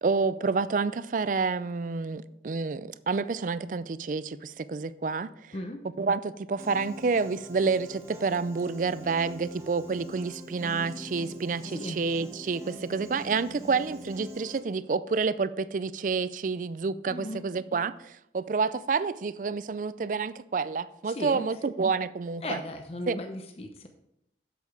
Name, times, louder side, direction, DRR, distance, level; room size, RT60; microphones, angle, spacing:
voice 1, 0.0-5.5 6.0-22.6 23.1-23.2, right 4 dB, 45° right, 0.4 m, -29 dB
Piano, 6.6-14.6, equal, 15° right, 1.0 m, -44 dB
voice 2, 17.1-17.4 21.1-21.4 22.4-23.9, left 1 dB, 35° left, 0.7 m, -36 dB
8.1 x 7.6 x 4.7 m
head